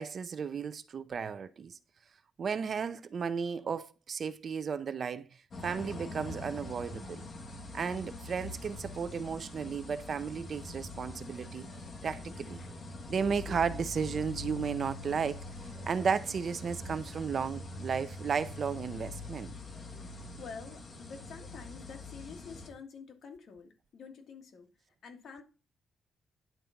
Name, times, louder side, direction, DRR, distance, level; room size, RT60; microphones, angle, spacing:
voice 1, 0.0-1.8 2.4-5.3 5.6-7.2 7.7-11.7 12.0-12.6 13.1-15.4 15.8-19.5, right 6 dB, 40° right, 0.5 m, -34 dB
sound 1, 5.5-22.7, left 2 dB, 35° left, 1.7 m, -44 dB
voice 2, 20.4-25.4, left 5 dB, 55° left, 1.9 m, -48 dB
10.0 x 4.0 x 5.7 m
cardioid pair, 145°, 0 cm